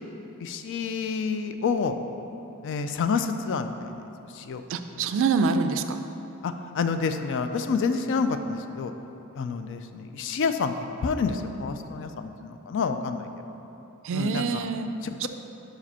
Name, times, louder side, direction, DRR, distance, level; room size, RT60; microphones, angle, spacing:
voice 1, 0.4-2.0 2.6-3.7 4.3-4.6 6.4-8.9 9.4-10.7 11.0-13.3 14.1-14.4 15.0-15.3, left 5 dB, 60° left, 8 dB, 0.4 m, -28 dB
voice 2, 4.7-6.0 14.0-14.9 15.2-15.3, right 4 dB, 65° right, 9 dB, 0.3 m, -25 dB
5.1 x 5.0 x 5.5 m, 3.0 s
head